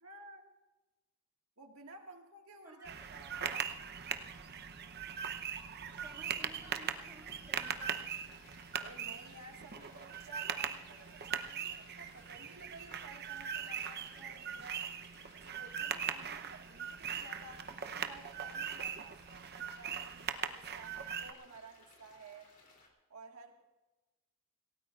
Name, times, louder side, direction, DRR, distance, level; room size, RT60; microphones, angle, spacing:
voice 1, 0.0-0.5 1.6-3.4 8.7-14.9 15.3-17.7 17.9-22.5 23.1-23.6, right 3 dB, 70° right, 2 dB, 1.8 m, -54 dB
sound 1, 2.8-21.3, right 7 dB, 45° right, 0.8 m, -40 dB
voice 2, 5.9-8.1, right 2 dB, 15° right, -5 dB, 3.2 m, -56 dB
sound 2, 7.6-22.9, left 3 dB, 40° left, 3.1 m, -63 dB
27.0 x 17.5 x 2.5 m, 1.1 s
head